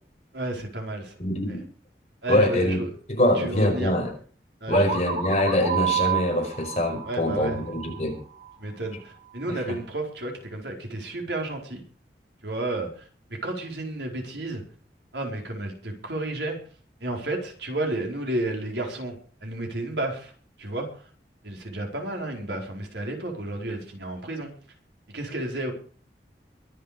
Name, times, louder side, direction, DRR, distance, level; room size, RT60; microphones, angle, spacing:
voice 1, 0.3-1.1 1.5-1.6 2.2-2.9 3.2-4.0 4.6-5.0 7.0-7.6 8.6-11.8 12.4-14.6 15.1-16.6 17.0-19.1 19.4-20.3 20.6-20.9 21.4-24.5 25.1-25.7, right 2 dB, 80° right, 1 dB, 4.6 m, -31 dB
voice 2, 1.2-1.6 2.3-4.1 4.7-8.2 9.5-9.8, left 1 dB, 40° left, 1 dB, 5.3 m, -24 dB
sound 1, 4.7-8.5, right 8 dB, 45° right, 4.1 m, -30 dB
23.0 x 8.6 x 5.2 m, 0.43 s
head